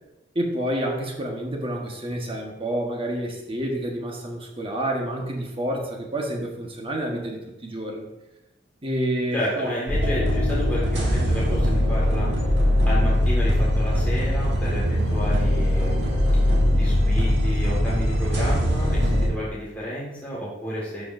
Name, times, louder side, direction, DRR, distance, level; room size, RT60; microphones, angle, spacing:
voice 1, 0.3-8.1 8.8-9.7, right 1 dB, 30° right, 0 dB, 1.3 m, -29 dB
voice 2, 9.3-12.3 12.9-16.2 16.8-21.0, equal, 10° left, -7 dB, 1.8 m, -31 dB
sound 1, 9.9-19.3, left 1 dB, 70° right, 1.6 m, -21 dB
12.5 x 4.8 x 2.6 m, 0.99 s
head